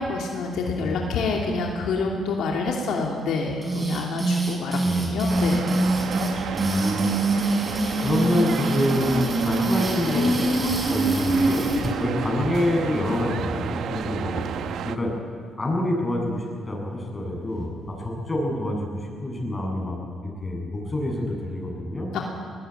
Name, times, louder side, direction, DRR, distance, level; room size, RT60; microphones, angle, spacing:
voice 1, 0.0-4.8 5.1-6.8 7.3-7.6 22.1-22.2, left 3 dB, 80° left, 0 dB, 2.9 m, -28 dB
sound 1, 3.6-11.9, right 2 dB, 20° right, 5.5 m, -24 dB
voice 2, 4.8-5.4 6.5-7.6 8.0-11.7 12.0-14.4 14.8-15.1 15.6-20.0 20.2-22.1, left 1 dB, 20° left, -1 dB, 7.8 m, -27 dB
sound 2, 5.3-15.0, right 8 dB, 70° right, 1.0 m, -32 dB
20.5 x 19.0 x 9.3 m, 2.1 s
cardioid pair, 90°, 0 cm